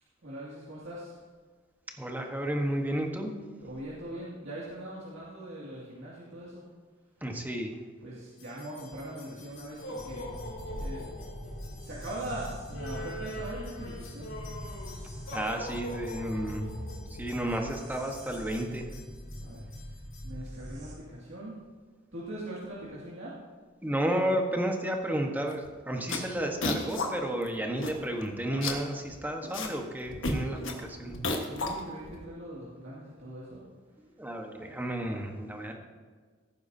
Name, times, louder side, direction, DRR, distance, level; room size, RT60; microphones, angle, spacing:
voice 1, 0.2-1.2 3.6-6.6 8.0-10.2 10.7-11.1 11.8-14.3 19.4-21.5 22.1-23.4 31.4-33.6 33.9-34.0 34.5-35.2, right 1 dB, 65° right, -7 dB, 2.2 m, -41 dB
voice 2, 2.0-3.3 7.2-7.8 15.3-16.8 17.1-18.9 23.8-31.2 34.2-35.7, right 1 dB, 10° right, 2 dB, 1.2 m, -32 dB
sound 1, 8.4-20.3, left 1 dB, 90° left, 2.8 m, -44 dB
sound 2, 9.9-20.9, equal, 40° right, 3.5 m, -42 dB
sound 3, 25.5-25.7 26.0-27.1 27.4-27.5 27.7-28.2 28.5-29.8 30.0-32.2, left 2 dB, 65° left, 1.4 m, -33 dB
16.5 x 9.4 x 2.7 m, 1.5 s
head